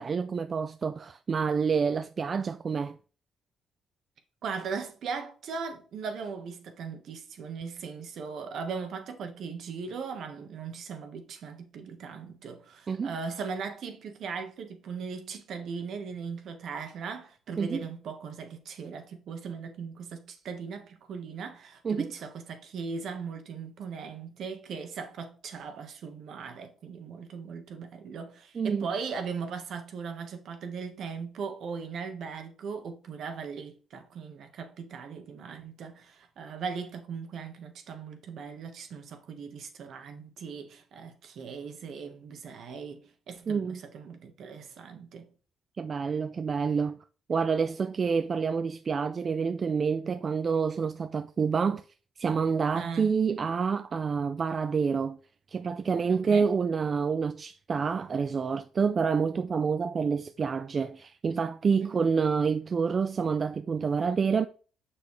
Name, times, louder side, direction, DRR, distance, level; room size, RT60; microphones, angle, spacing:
voice 1, 0.0-3.0 12.9-13.1 17.6-17.8 21.8-22.1 28.6-28.9 43.5-43.8 45.8-47.0 47.3-51.8 52.2-55.2 55.5-64.5, right 5 dB, 40° right, 0.3 m, -28 dB
voice 2, 4.4-45.3 52.7-53.1 56.1-56.5 61.8-62.1, right 5 dB, 70° right, 1.3 m, -39 dB
6.3 x 6.0 x 3.2 m
cardioid pair, 90°, 0 cm